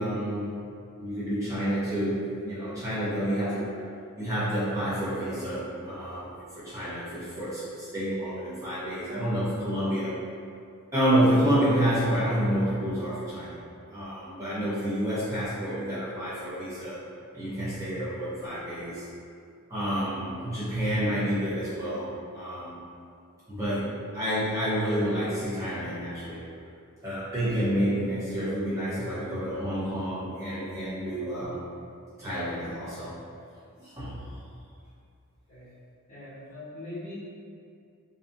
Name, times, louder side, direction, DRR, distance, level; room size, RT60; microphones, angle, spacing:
voice 1, 0.0-3.7 4.2-10.2 10.9-13.6 13.9-17.0 17.3-19.1 19.7-22.8 23.5-26.4 27.0-31.6 32.2-33.2 33.8-34.3, equal, 15° right, -12 dB, 0.5 m, -29 dB
voice 2, 36.1-37.1, left 2 dB, 30° left, -12 dB, 1.0 m, -41 dB
2.6 x 2.4 x 2.4 m, 2.4 s
head